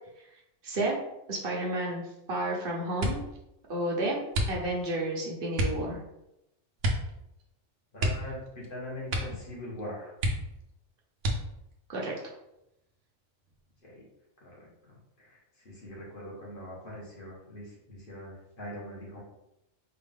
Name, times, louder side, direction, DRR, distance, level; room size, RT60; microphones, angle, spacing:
voice 1, 0.6-1.0 1.3-2.0 2.3-3.2 3.7-4.2 4.5-6.0 11.9-12.1, right 1 dB, 55° right, -2 dB, 1.1 m, -31 dB
sound 1, 3.0-3.4 4.3-4.9 5.5-5.9 6.8-7.1 7.4-7.5 7.9-8.7 9.0-9.5 9.8-9.9 10.2-10.7 11.2-11.7 12.4-13.1 13.4-13.8, equal, 80° right, 1.1 m, -30 dB
voice 2, 7.9-10.1 13.8-14.0 14.4-19.2, left 1 dB, 50° left, -4 dB, 1.5 m, -42 dB
4.7 x 2.5 x 3.4 m, 0.86 s
omnidirectional pair, 1.2 m